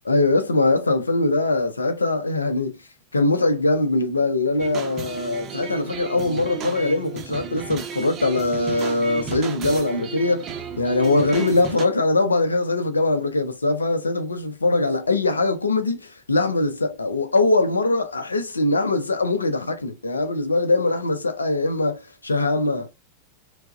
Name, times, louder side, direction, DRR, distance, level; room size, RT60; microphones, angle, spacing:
voice 1, 0.1-2.8 3.1-22.9, left 2 dB, 75° left, 0.4 m, -22 dB
sound 1, 4.6-11.9, right 6 dB, 30° right, 0.5 m, -34 dB
4.4 x 2.0 x 2.3 m
figure-of-eight pair, 90°, 0 cm